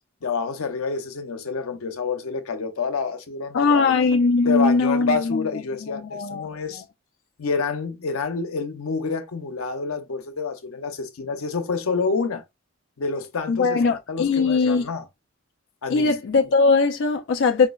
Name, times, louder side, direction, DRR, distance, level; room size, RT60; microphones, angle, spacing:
voice 1, 0.2-3.9 4.4-6.8 7.4-12.4 13.0-13.8 14.1-15.0 15.8-16.1, left 4 dB, 90° left, 0.7 m, -28 dB
voice 2, 3.5-5.4 5.9-6.8 13.5-14.9 15.9-17.7, left 4 dB, 60° left, 0.4 m, -20 dB
4.6 x 2.0 x 2.3 m
head